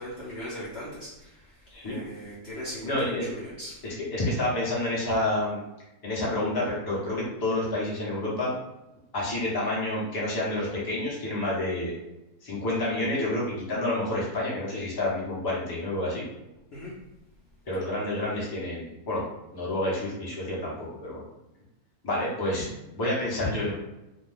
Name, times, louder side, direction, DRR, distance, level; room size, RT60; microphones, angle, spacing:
voice 1, 0.0-1.4 1.8-3.7 16.7-16.9, equal, 55° left, -7 dB, 0.7 m, -39 dB
voice 2, 1.7-2.0 2.8-3.3 3.8-5.6 6.0-8.6 9.1-11.9 12.4-16.2 17.7-19.2 19.5-21.2 22.0-22.7 22.9-23.7, left 1 dB, 20° left, -6 dB, 0.7 m, -29 dB
2.6 x 2.2 x 3.3 m, 0.96 s
omnidirectional pair, 1.6 m